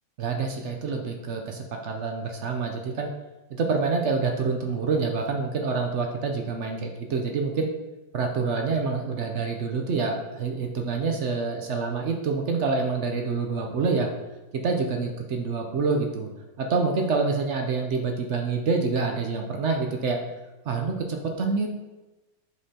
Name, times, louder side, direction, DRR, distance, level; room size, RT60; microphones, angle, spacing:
voice 1, 0.2-3.1 3.5-7.7 8.1-14.1 14.5-16.3 16.6-20.2 20.7-21.7, right 4 dB, 60° right, 2 dB, 0.8 m, -27 dB
6.7 x 5.3 x 2.8 m, 1.1 s
omnidirectional pair, 1.7 m